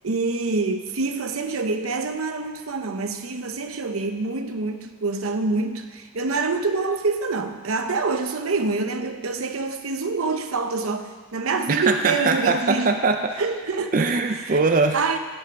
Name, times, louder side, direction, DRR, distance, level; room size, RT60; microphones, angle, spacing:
voice 1, 0.0-13.0 13.4-13.9 14.5-14.6 14.9-15.2, right 3 dB, 85° right, 7 dB, 0.8 m, -26 dB
voice 2, 11.7-13.4 13.9-15.0, right 3 dB, 40° right, 6 dB, 0.5 m, -21 dB
16.0 x 5.7 x 5.3 m, 1.5 s
head